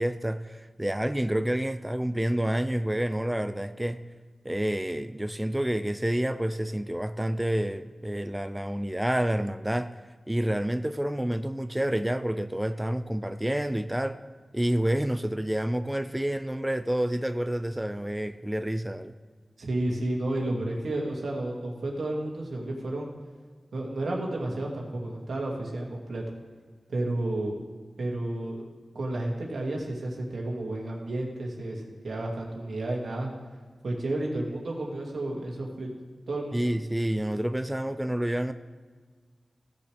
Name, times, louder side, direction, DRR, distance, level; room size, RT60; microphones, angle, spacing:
voice 1, 0.0-4.0 4.4-9.9 10.3-14.2 14.5-19.1 36.5-38.5, right 1 dB, 10° right, 10 dB, 0.3 m, -28 dB
voice 2, 19.6-23.1 23.7-26.2 26.9-27.5 28.0-28.6 28.9-33.3 33.8-35.9 36.3-36.6, right 1 dB, 85° right, -2 dB, 2.1 m, -31 dB
17.0 x 6.7 x 3.4 m, 1.5 s
wide cardioid pair, 105°, 0 cm